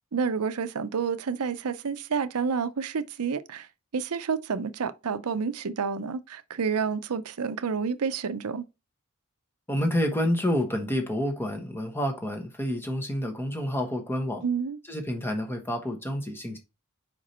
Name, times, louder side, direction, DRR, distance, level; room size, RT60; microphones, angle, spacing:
voice 1, 0.1-3.7 3.9-8.6 14.4-14.8, right 5 dB, 90° right, 0.6 m, -29 dB
voice 2, 9.7-14.4 14.9-16.6, equal, 10° left, 1.2 m, -28 dB
5.2 x 4.9 x 4.3 m
head